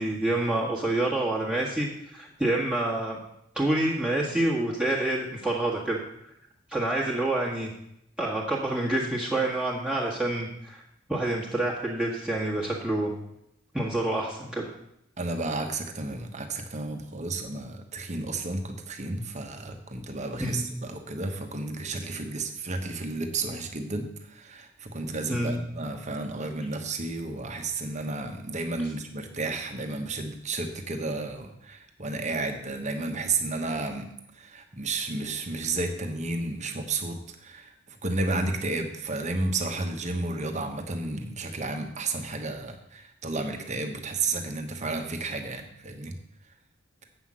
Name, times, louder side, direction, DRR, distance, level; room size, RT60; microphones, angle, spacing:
voice 1, 0.0-3.2 3.5-6.0 6.7-7.7 8.2-10.8 11.1-13.1 13.7-14.7 20.4-20.6 25.3-25.6, right 1 dB, 5° right, -5 dB, 1.6 m, -27 dB
voice 2, 15.2-34.1 34.4-37.7 38.0-46.1, right 3 dB, 35° right, 5 dB, 1.2 m, -32 dB
8.0 x 5.8 x 7.4 m, 0.78 s
head